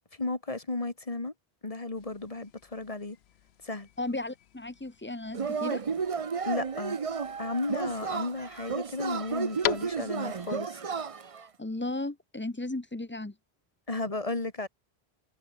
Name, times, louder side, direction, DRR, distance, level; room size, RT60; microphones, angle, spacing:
voice 1, 0.0-1.3 1.6-3.2 3.6-3.9 6.4-7.0 7.4-10.8 13.9-14.7, left 2 dB, 35° left, 1.9 m, -34 dB
sound 1, 2.0-10.5, left 10 dB, 80° left, 1.0 m, -42 dB
voice 2, 4.0-5.8 11.6-13.3, left 2 dB, 10° left, 0.9 m, -35 dB
Yell / Cheering, 5.3-11.5, right 5 dB, 35° right, 0.7 m, -33 dB
omnidirectional pair, 1.1 m